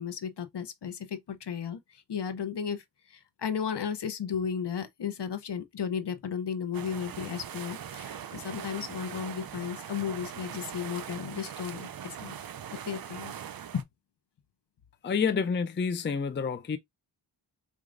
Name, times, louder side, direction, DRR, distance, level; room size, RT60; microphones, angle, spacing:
voice 1, 0.0-12.4 12.8-13.3 13.7-13.9, left 7 dB, 65° left, 0.7 m, -34 dB
sound 1, 6.7-13.8, right 9 dB, 55° right, 0.5 m, -41 dB
voice 2, 15.0-16.8, left 6 dB, 25° left, 0.4 m, -28 dB
4.9 x 2.4 x 2.5 m
wide cardioid pair, 85°, 44 cm